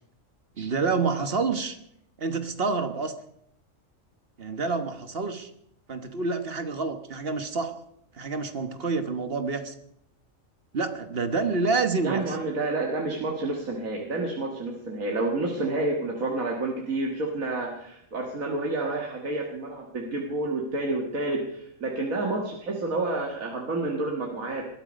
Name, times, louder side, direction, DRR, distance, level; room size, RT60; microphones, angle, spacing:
voice 1, 0.6-1.8 2.2-3.1 4.4-5.5 5.9-7.8 8.1-9.7 10.7-12.4, right 4 dB, 45° right, 8 dB, 1.4 m, -28 dB
voice 2, 12.0-24.7, right 2 dB, 85° right, 0 dB, 2.1 m, -29 dB
21.0 x 13.0 x 5.2 m, 0.73 s
omnidirectional pair, 1.4 m